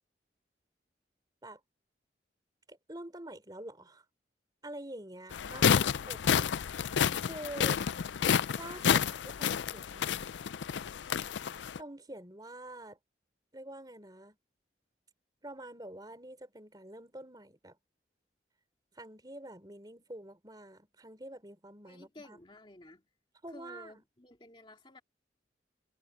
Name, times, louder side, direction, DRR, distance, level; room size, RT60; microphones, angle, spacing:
voice 1, 2.7-4.0 4.6-6.5 7.2-7.8 8.6-10.1 11.8-13.0 13.5-14.4 15.4-17.8 18.9-22.4 23.4-24.0, right 1 dB, 20° right, 3.6 m, -46 dB
sound 1, 5.3-11.8, left 8 dB, 80° left, 0.4 m, -30 dB
voice 2, 21.9-23.0 23.5-25.0, left 1 dB, 25° left, 2.4 m, -54 dB
head